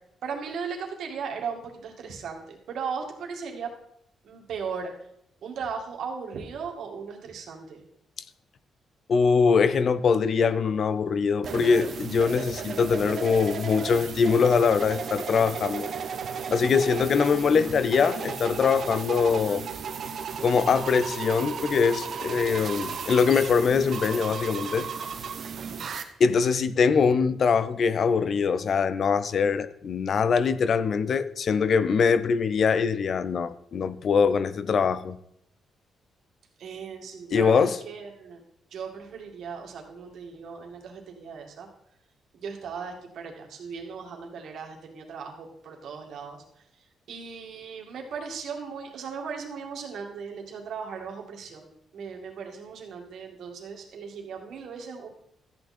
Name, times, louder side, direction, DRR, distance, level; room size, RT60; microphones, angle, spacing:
voice 1, 0.2-3.7 4.2-4.9 5.4-7.8 16.7-17.4 25.6-25.8 36.6-38.4 38.7-41.7 42.3-46.4 47.1-55.1, right 6 dB, 60° right, 2.1 m, -37 dB
voice 2, 9.1-15.9 16.5-19.6 20.4-24.9 26.2-35.2 37.3-37.8, left 5 dB, 40° left, 0.5 m, -23 dB
sound 1, 11.4-26.0, right 6 dB, 45° right, 0.9 m, -35 dB
13.5 x 8.6 x 4.3 m
cardioid pair, 175°, 0 cm